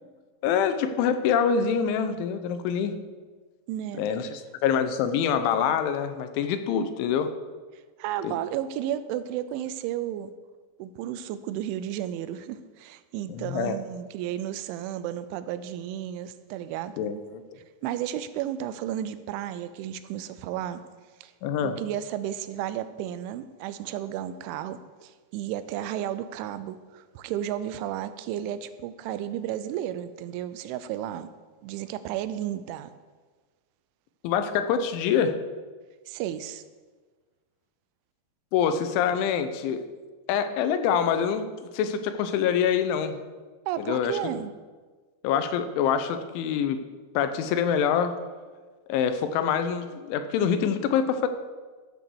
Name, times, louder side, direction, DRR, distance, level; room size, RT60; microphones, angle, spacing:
voice 1, 0.4-2.9 4.0-7.3 8.2-8.4 13.3-13.8 17.0-17.4 21.4-21.8 34.2-35.4 38.5-39.8 40.3-41.4 41.7-43.2 43.8-44.2 45.2-46.8 47.1-48.1 48.9-51.3, left 7 dB, 85° left, 10 dB, 3.3 m, -25 dB
voice 2, 3.7-4.0 8.0-10.3 10.8-17.0 17.8-20.8 21.2-21.3 21.6-31.3 31.6-32.9 36.1-36.6 43.7-44.5, right 11 dB, 90° right, 13 dB, 3.1 m, -33 dB
14.0 x 6.3 x 7.0 m, 1.4 s
omnidirectional pair, 5.3 m